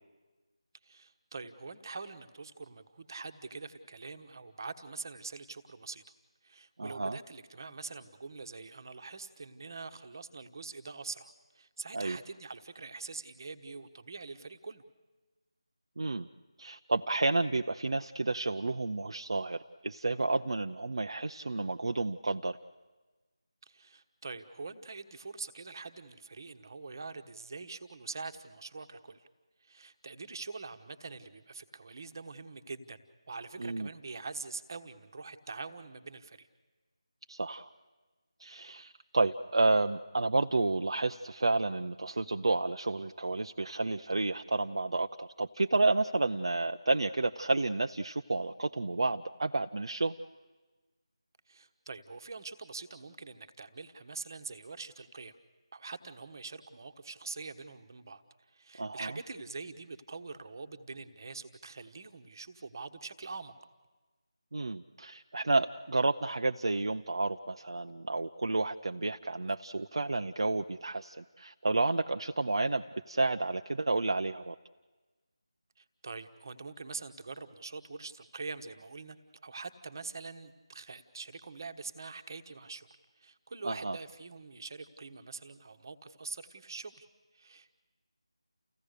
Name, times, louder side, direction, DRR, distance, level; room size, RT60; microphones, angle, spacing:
voice 1, 0.8-6.0 6.4-14.8 23.7-29.3 29.6-33.0 33.3-36.5 51.5-55.3 55.7-58.2 58.5-63.5 75.8-79.2 79.4-82.9 83.2-87.1 87.3-87.8, right 4 dB, 40° right, 9 dB, 1.2 m, -44 dB
voice 2, 6.8-7.2 11.9-12.2 16.0-16.3 16.6-22.6 33.6-33.9 37.3-37.7 38.4-50.1 58.8-59.1 64.5-74.5 83.6-84.0, right 2 dB, 60° right, 6 dB, 0.6 m, -31 dB
29.5 x 16.0 x 6.7 m, 1.3 s
figure-of-eight pair, 165°, 3 cm